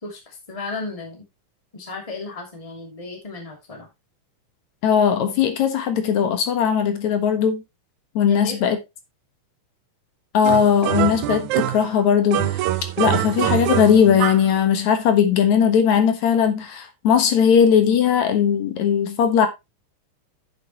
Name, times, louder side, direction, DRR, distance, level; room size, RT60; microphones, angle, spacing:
voice 1, 0.0-1.2 1.7-3.9 8.3-8.7, left 3 dB, 10° left, 2.5 m, -34 dB
voice 2, 4.8-7.6 8.2-8.8 10.3-12.6 13.0-19.5, left 8 dB, 65° left, 2.5 m, -18 dB
sound 1, 10.4-11.9 12.3-14.5, right 13 dB, 75° right, 2.0 m, -24 dB
10.0 x 7.3 x 3.0 m
omnidirectional pair, 3.7 m